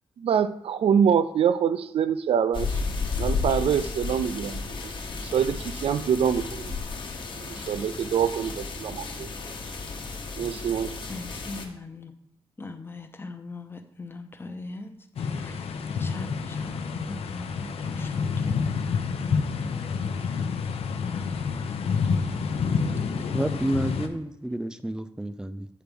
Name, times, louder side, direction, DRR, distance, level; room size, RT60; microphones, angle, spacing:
voice 1, 0.2-2.8 3.2-4.9 5.2-6.8 7.5-9.3 10.4-10.9, right 8 dB, 75° right, 0.5 m, -25 dB
sound 1, 2.5-11.7, left 4 dB, 55° left, 1.1 m, -33 dB
voice 2, 11.1-12.1 12.6-14.9 15.2-19.0 21.2-21.6, left 3 dB, 25° left, 0.7 m, -41 dB
sound 2, 15.2-24.1, left 5 dB, 85° left, 0.7 m, -28 dB
voice 3, 23.3-25.7, right 1 dB, 5° right, 0.4 m, -30 dB
8.5 x 4.6 x 5.2 m
wide cardioid pair, 155°, 10 cm